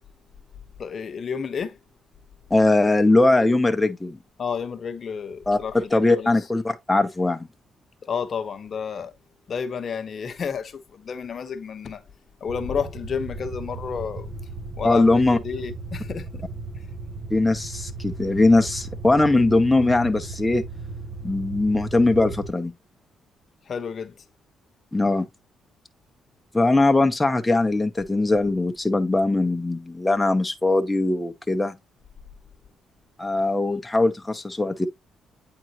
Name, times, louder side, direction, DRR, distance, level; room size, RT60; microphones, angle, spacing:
voice 1, 0.8-1.8 4.4-6.3 8.0-9.1 9.5-12.0 12.4-14.3 14.8-16.5 23.7-24.1, left 6 dB, 50° left, 1.0 m, -31 dB
voice 2, 2.5-4.2 5.5-7.5 14.8-15.4 17.3-20.6 21.2-22.7 24.9-25.3 26.5-31.7 33.2-34.9, left 2 dB, 10° left, 0.8 m, -20 dB
sound 1, 12.5-22.5, right 3 dB, 50° right, 1.3 m, -36 dB
9.0 x 3.8 x 3.0 m
cardioid pair, 90°, 0 cm